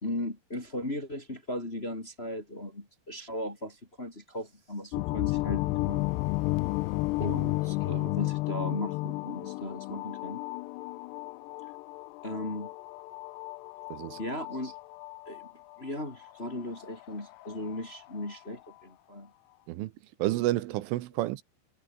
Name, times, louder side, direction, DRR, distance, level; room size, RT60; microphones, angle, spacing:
voice 1, 0.0-6.0 7.2-10.4 12.2-12.7 14.2-14.7 15.3-15.5 15.8-19.3, left 1 dB, 15° left, 2.4 m, -37 dB
sound 1, 4.9-18.4, left 21 dB, 80° left, 2.5 m, -33 dB
voice 2, 13.9-14.2 19.7-19.9 20.2-21.4, right 16 dB, 85° right, 3.7 m, -30 dB
omnidirectional pair, 5.5 m